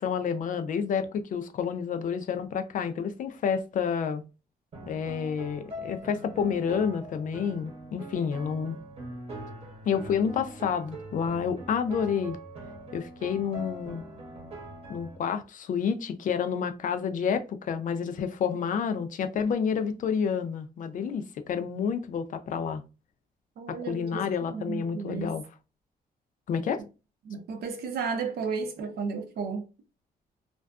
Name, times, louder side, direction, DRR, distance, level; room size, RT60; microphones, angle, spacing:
voice 1, 0.0-4.2 4.9-8.8 9.8-12.4 12.9-14.0 14.9-22.8 23.7-25.5 26.5-26.8, left 7 dB, 55° left, 0.4 m, -29 dB
sound 1, 4.7-15.2, right 1 dB, 40° right, 0.9 m, -42 dB
voice 2, 23.6-25.3 27.2-29.7, right 5 dB, 75° right, 0.6 m, -33 dB
2.5 x 2.3 x 2.2 m
cardioid pair, 115°, 16 cm